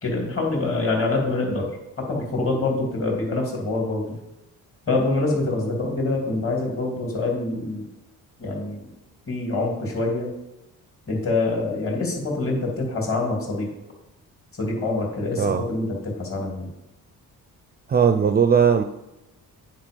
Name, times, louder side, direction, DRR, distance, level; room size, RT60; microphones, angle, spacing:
voice 1, 0.0-1.7 2.0-4.2 4.9-7.9 8.4-8.9 9.3-10.3 11.1-13.7 14.6-16.7, left 2 dB, 40° left, 0 dB, 2.7 m, -25 dB
voice 2, 17.9-18.8, right 7 dB, 30° right, 8 dB, 0.4 m, -18 dB
9.0 x 4.7 x 5.2 m, 0.95 s
cardioid pair, 120°, 34 cm